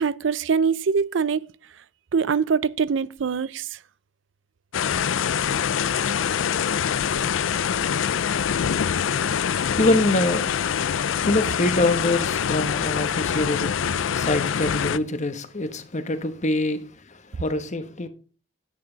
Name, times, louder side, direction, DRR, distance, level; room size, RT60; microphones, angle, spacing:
voice 1, 0.0-1.4 2.1-3.7, right 6 dB, 70° right, 0.5 m, -23 dB
sound 1, 4.7-15.0, left 8 dB, 90° left, 0.5 m, -24 dB
voice 2, 9.3-10.5 10.8-18.1, left 2 dB, 40° left, 1.2 m, -25 dB
10.5 x 9.4 x 4.0 m
head